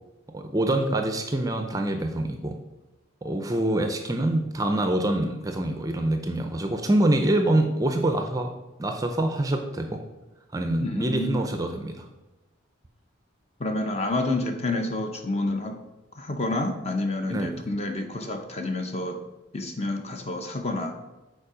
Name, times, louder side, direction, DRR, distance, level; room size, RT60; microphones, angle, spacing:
voice 1, 0.3-2.6 3.2-8.5 8.8-10.0 10.5-12.1 17.3-17.6, right 1 dB, 15° right, 5 dB, 0.5 m, -25 dB
voice 2, 10.8-11.4 13.6-15.8 16.2-19.2 19.5-21.0, left 2 dB, 30° left, 5 dB, 0.7 m, -29 dB
7.0 x 4.6 x 5.0 m, 1.0 s
head